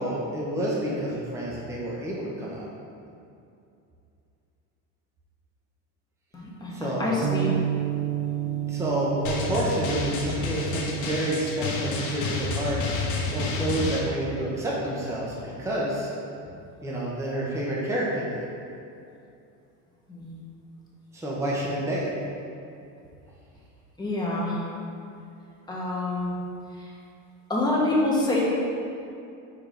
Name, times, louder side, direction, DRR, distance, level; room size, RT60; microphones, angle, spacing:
voice 1, 0.0-2.7 6.7-7.1 7.4-7.5 8.4-12.8 13.3-16.1 16.8-18.5 21.1-22.1, right 1 dB, 10° right, -5 dB, 0.9 m, -29 dB
voice 2, 6.3-7.5 20.1-20.3 24.0-24.6 25.7-26.3 27.5-28.4, left 2 dB, 10° left, -5 dB, 1.3 m, -26 dB
sound 1, 7.2-14.0, right 10 dB, 45° right, 0.6 m, -32 dB
Drum, 9.2-14.0, left 3 dB, 55° left, 1.0 m, -30 dB
4.9 x 4.8 x 5.1 m, 2.6 s
cardioid pair, 135°, 36 cm